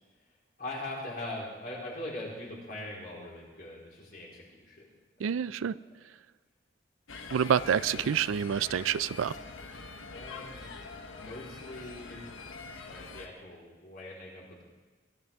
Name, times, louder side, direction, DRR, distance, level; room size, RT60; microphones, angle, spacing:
voice 1, 0.6-4.9 8.7-8.9 10.1-10.7 11.2-12.2 12.9-14.6, left 1 dB, 45° left, -4 dB, 4.1 m, -41 dB
voice 2, 5.2-5.8 7.3-9.3, right 8 dB, 85° right, 18 dB, 0.4 m, -27 dB
sound 1, 7.1-13.3, left 4 dB, 85° left, 1.2 m, -44 dB
20.5 x 13.0 x 3.5 m, 1.4 s
head